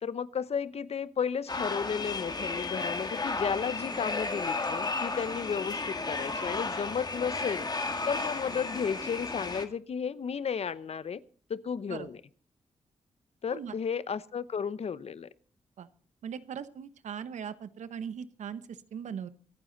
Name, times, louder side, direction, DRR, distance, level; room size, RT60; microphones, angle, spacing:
voice 1, 0.0-7.7 8.0-11.2 11.5-12.2 13.4-15.3, left 6 dB, 60° left, 17 dB, 0.8 m, -33 dB
sound 1, 1.5-9.6, left 3 dB, 35° left, 1.9 m, -33 dB
voice 2, 16.2-19.3, right 7 dB, 80° right, 13 dB, 1.0 m, -39 dB
25.0 x 9.2 x 4.0 m, 0.42 s
cardioid pair, 60°, 12 cm